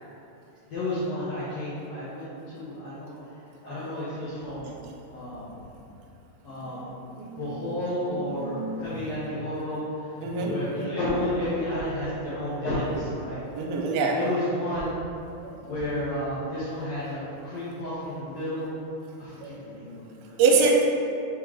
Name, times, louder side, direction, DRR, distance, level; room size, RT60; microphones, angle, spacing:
voice 1, 0.7-3.2 3.6-4.8 5.1-5.5 6.4-7.0 7.4-10.1 10.4-13.4 14.0-14.9 15.5-18.7 19.2-20.4, left 1 dB, 75° left, -11 dB, 1.5 m, -31 dB
voice 2, 6.7-7.4 8.4-8.8 10.2-10.5 13.6-14.2 15.4-15.5 19.4-19.5 20.4-20.8, right 4 dB, 80° right, 0 dB, 2.4 m, -24 dB
5.7 x 3.7 x 4.8 m, 2.7 s
omnidirectional pair, 4.6 m